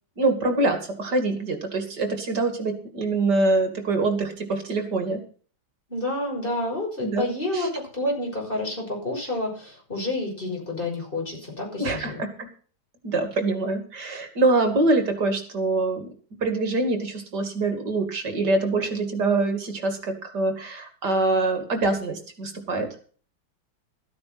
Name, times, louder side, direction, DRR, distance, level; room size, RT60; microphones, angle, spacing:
voice 1, 0.2-5.2 7.0-7.3 7.5-7.7 11.8-12.5 13.0-16.1 16.4-22.9, right 2 dB, 50° right, 6 dB, 2.9 m, -24 dB
voice 2, 5.9-12.2, left 1 dB, 25° left, 0 dB, 6.4 m, -29 dB
14.0 x 9.6 x 5.9 m, 0.43 s
omnidirectional pair, 2.3 m